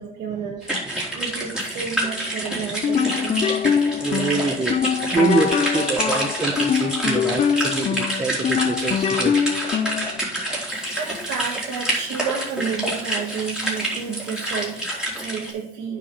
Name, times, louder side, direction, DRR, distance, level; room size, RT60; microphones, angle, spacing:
voice 1, 0.0-3.4 10.5-16.0, right 6 dB, 80° right, 1.5 m, -31 dB
sound 1, 0.6-15.5, right 1 dB, 5° right, 3.3 m, -27 dB
sound 2, 2.7-10.2, left 7 dB, 40° left, 0.5 m, -23 dB
voice 2, 4.0-9.3 10.1-10.4, right 3 dB, 20° right, 0.8 m, -26 dB
9.2 x 5.1 x 5.4 m
cardioid pair, 110°, 17 cm